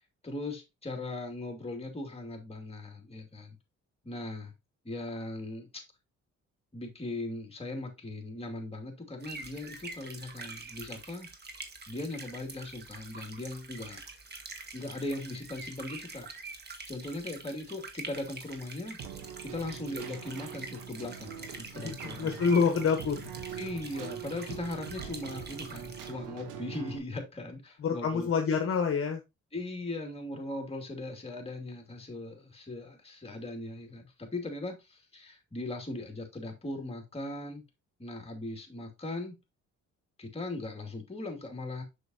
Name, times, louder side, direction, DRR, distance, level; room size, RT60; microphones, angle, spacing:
voice 1, 0.2-3.6 4.0-4.5 4.8-5.8 6.7-11.3 11.9-14.0 14.7-16.3 16.9-19.0 19.4-22.4 23.6-28.3 29.5-37.6 38.0-39.4 40.2-41.8, left 2 dB, 20° left, 3 dB, 2.6 m, -39 dB
sound 1, 9.2-26.1, right 3 dB, 35° right, 1.5 m, -46 dB
Keyboard (musical), 19.0-27.0, right 8 dB, 85° right, 1.2 m, -43 dB
voice 2, 21.8-23.3 27.8-29.2, left 5 dB, 45° left, 5 dB, 1.1 m, -27 dB
6.9 x 6.2 x 2.8 m, 0.23 s
cardioid pair, 90°, 30 cm